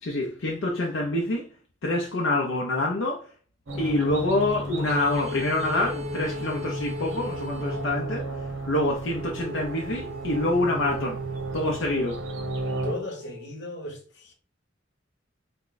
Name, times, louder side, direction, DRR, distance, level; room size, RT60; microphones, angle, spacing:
voice 1, 0.0-1.5 1.8-3.3 3.8-8.3 8.7-11.2 11.5-12.2, left 2 dB, 80° left, 0.6 m, -26 dB
sound 1, 3.7-13.0, right 2 dB, 85° right, 0.8 m, -33 dB
sound 2, 4.8-8.1 9.2-13.6, left 4 dB, 35° right, 0.6 m, -40 dB
voice 2, 12.8-14.3, left 1 dB, 60° left, 1.0 m, -36 dB
3.5 x 2.2 x 3.9 m
head